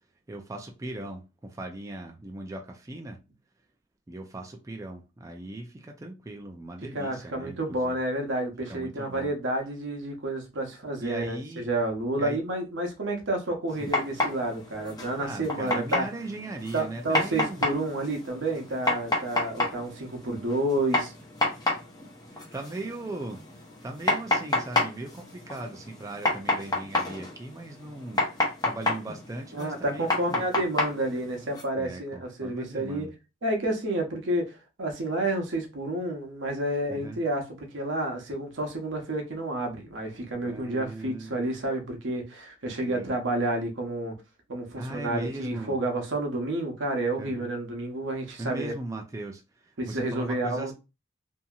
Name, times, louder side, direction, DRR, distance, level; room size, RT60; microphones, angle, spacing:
voice 1, 0.3-3.2 4.1-8.0 8.7-9.3 11.0-11.7 12.2-12.4 13.8-13.9 15.1-17.7 22.3-23.4 23.8-28.2 28.6-30.4 31.8-33.1 36.9-37.2 40.5-41.5 42.6-43.1 44.8-45.8 47.2-47.5 48.4-50.7, right 2 dB, 15° right, 0.3 m, -38 dB
voice 2, 6.9-16.1 16.7-21.1 29.5-33.1 33.4-44.2 44.5-48.7 49.8-50.7, right 1 dB, 85° right, 0.8 m, -30 dB
sound 1, 13.7-31.6, left 2 dB, 20° left, 0.8 m, -31 dB
2.7 x 2.6 x 2.3 m
head